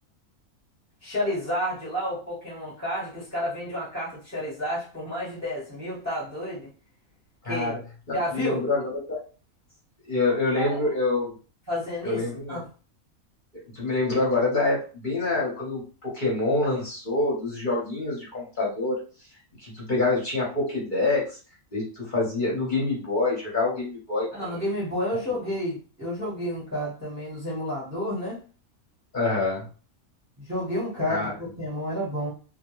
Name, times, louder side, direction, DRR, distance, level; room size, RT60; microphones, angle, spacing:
voice 1, 1.0-6.7 7.4-7.7 8.1-8.7 10.5-10.8 11.7-12.6 24.3-28.4 30.4-32.3, left 1 dB, 15° right, -6 dB, 0.8 m, -30 dB
voice 2, 7.4-7.8 8.1-9.2 10.1-11.3 12.0-12.6 13.7-19.0 19.6-21.4 21.7-24.6 29.1-29.6 31.1-31.3, left 2 dB, 45° left, -3 dB, 0.8 m, -26 dB
2.3 x 2.1 x 2.9 m, 0.36 s
omnidirectional pair, 1.5 m